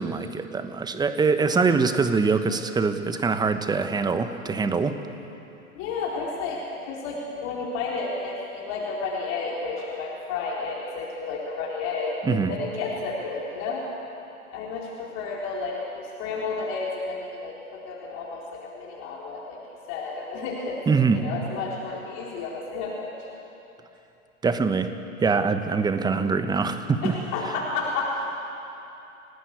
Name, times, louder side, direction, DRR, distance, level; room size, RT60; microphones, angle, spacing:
voice 1, 0.0-5.0 12.2-12.5 20.9-21.2 24.4-24.9 25.2-27.2, right 4 dB, 10° right, 9 dB, 1.2 m, -23 dB
voice 2, 5.7-13.8 14.5-19.6 19.9-20.8 21.1-23.1 27.0-28.3, left 4 dB, 35° left, -3 dB, 4.2 m, -31 dB
29.0 x 18.5 x 8.3 m, 3.0 s
hypercardioid pair, 115°, 44 cm